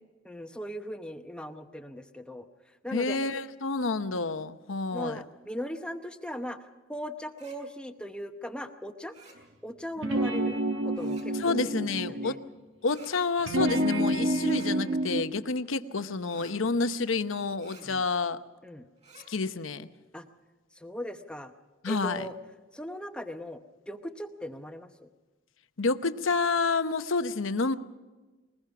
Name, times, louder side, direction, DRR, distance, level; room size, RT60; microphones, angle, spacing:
voice 1, 0.2-3.4 4.9-9.2 9.6-12.4 17.7-18.0 18.6-18.8 20.1-20.3 20.7-21.5 21.9-22.3 22.7-25.1, equal, 5° left, 6 dB, 0.8 m, -39 dB
voice 2, 2.9-5.2 11.4-12.4 12.8-18.4 19.3-19.9 21.8-22.3 25.8-27.7, left 4 dB, 80° left, 10 dB, 0.9 m, -29 dB
sound 1, 7.3-7.6 9.1-9.4 10.9-11.3 12.8-13.1 14.4-14.7 16.2-16.6 17.6-17.8 19.0-19.3, right 3 dB, 35° right, 5.4 m, -53 dB
sound 2, 10.0-12.4 13.4-15.2, right 1 dB, 65° right, 1.5 m, -28 dB
21.5 x 20.5 x 5.9 m, 1.2 s
head